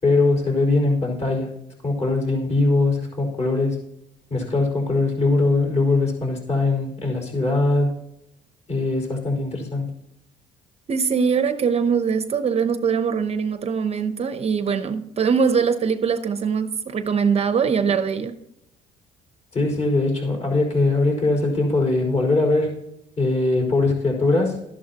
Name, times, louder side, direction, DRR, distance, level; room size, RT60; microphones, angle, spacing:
voice 1, 0.0-1.5 1.8-3.8 4.3-8.0 8.7-9.9 19.5-22.8 23.2-24.6, left 2 dB, 40° left, 1 dB, 4.8 m, -21 dB
voice 2, 10.9-18.3, right 6 dB, 40° right, 10 dB, 0.7 m, -22 dB
12.5 x 11.0 x 2.9 m, 0.83 s
cardioid pair, 110°, 17 cm